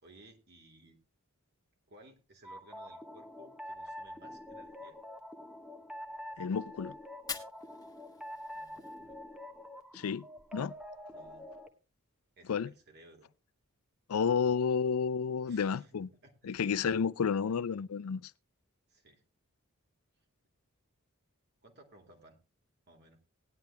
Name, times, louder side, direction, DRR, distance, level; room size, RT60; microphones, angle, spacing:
voice 1, 0.0-1.0 1.9-5.0 8.5-9.2 11.1-11.5 12.4-13.3 15.5-16.6 18.9-19.2 21.6-22.4 22.9-23.2, right 1 dB, 50° right, 2.4 m, -59 dB
sound 1, 2.4-11.7, left 1 dB, 5° right, 1.1 m, -46 dB
voice 2, 6.4-6.9 9.9-10.2 10.5-10.7 12.5-12.7 14.1-16.1 16.4-18.3, left 6 dB, 85° left, 0.4 m, -31 dB
Fire, 7.1-9.1, left 6 dB, 20° left, 1.3 m, -45 dB
19.0 x 10.5 x 2.2 m
head